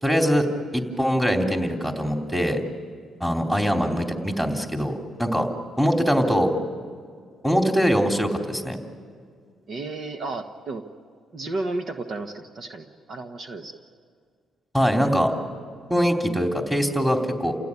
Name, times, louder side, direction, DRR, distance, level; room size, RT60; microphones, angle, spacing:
voice 1, 0.0-0.5 0.7-2.6 3.2-5.5 5.8-6.5 7.4-8.8 14.7-15.3 15.9-17.6, equal, 5° right, 3 dB, 3.4 m, -22 dB
voice 2, 9.7-10.8 11.3-13.8, right 2 dB, 55° right, 6 dB, 1.5 m, -33 dB
29.5 x 17.0 x 9.9 m, 2.1 s
cardioid pair, 90°, 0 cm